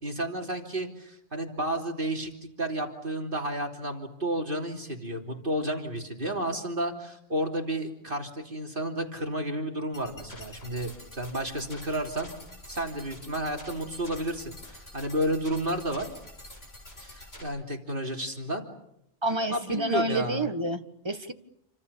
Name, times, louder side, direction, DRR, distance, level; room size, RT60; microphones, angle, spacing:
voice 1, 0.0-12.3 12.7-16.1 17.0-18.7 19.5-20.5, right 1 dB, 45° right, 2 dB, 3.4 m, -32 dB
sound 1, 9.9-17.4, left 1 dB, 60° left, 8.1 m, -47 dB
voice 2, 19.2-21.3, right 1 dB, 25° right, 8 dB, 1.6 m, -29 dB
29.0 x 25.5 x 7.0 m, 0.79 s
omnidirectional pair, 1.2 m